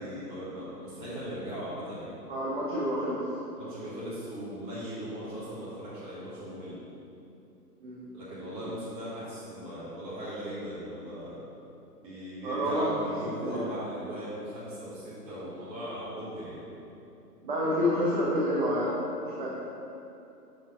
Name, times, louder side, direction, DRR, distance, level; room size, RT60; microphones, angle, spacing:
voice 1, 0.0-2.2 3.6-6.8 8.1-11.4 12.0-16.6, equal, 10° right, -11 dB, 1.4 m, -38 dB
voice 2, 2.3-3.2 7.8-8.1 12.4-12.9 13.4-13.6 17.4-19.0 19.4-19.6, equal, 35° right, -6 dB, 0.7 m, -28 dB
5.9 x 5.1 x 3.7 m, 2.8 s
hypercardioid pair, 155°, 49 cm